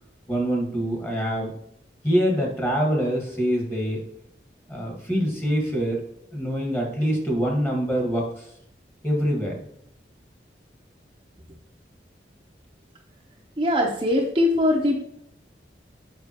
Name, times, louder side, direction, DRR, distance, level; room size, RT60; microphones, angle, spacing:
voice 1, 0.3-1.5 2.0-4.0 4.7-6.0 6.3-8.5 9.0-9.7, equal, 15° left, -1 dB, 1.7 m, -25 dB
voice 2, 13.6-15.1, left 1 dB, 30° right, -1 dB, 0.8 m, -21 dB
6.8 x 5.6 x 3.0 m, 0.70 s
head